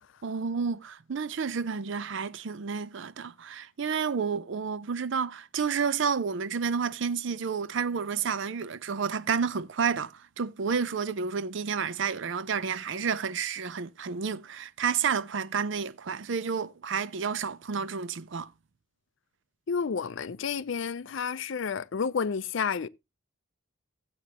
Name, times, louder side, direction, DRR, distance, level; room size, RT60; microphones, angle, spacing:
voice 1, 0.2-18.5, right 6 dB, 65° right, 0.5 m, -30 dB
voice 2, 19.7-22.9, left 6 dB, 65° left, 0.5 m, -30 dB
15.0 x 7.8 x 2.8 m
head